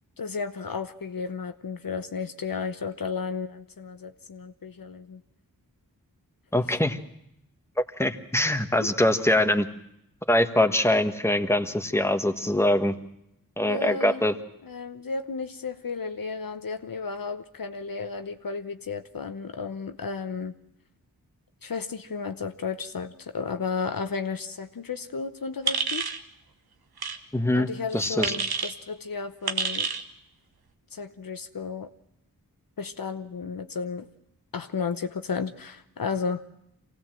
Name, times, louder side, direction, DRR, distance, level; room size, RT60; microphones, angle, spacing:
voice 1, 0.2-5.2 8.8-8.9 13.7-14.3 14.6-20.5 21.6-26.1 27.5-29.9 30.9-31.9 32.8-34.1 34.5-36.4, left 5 dB, 65° left, 8 dB, 1.0 m, -33 dB
voice 2, 6.5-7.0 8.0-9.7 10.3-12.9 13.6-14.4 27.3-28.3, left 1 dB, 5° left, 7 dB, 1.5 m, -23 dB
sound 1, 25.7-26.2 27.0-27.2 28.2-28.7 29.5-30.0, right 5 dB, 90° right, 1.1 m, -28 dB
24.5 x 16.5 x 7.5 m, 0.79 s
cardioid pair, 40°, 37 cm